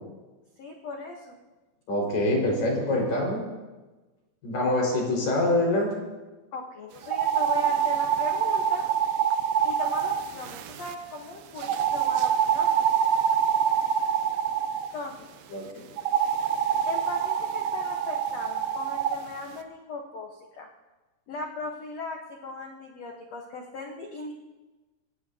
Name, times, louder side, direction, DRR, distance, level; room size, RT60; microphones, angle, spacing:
voice 1, 0.6-1.4 6.5-8.8 9.6-12.9 14.9-15.3 16.9-20.7 21.3-24.3, left 3 dB, 85° left, 1 dB, 1.4 m, -38 dB
voice 2, 1.9-3.4 4.4-5.9 15.5-15.8, left 1 dB, 55° left, -1 dB, 6.8 m, -25 dB
sound 1, 7.0-10.9 11.6-14.9 16.0-19.2, right 8 dB, 75° right, 2.2 m, -25 dB
27.0 x 17.5 x 2.9 m, 1.2 s
omnidirectional pair, 5.0 m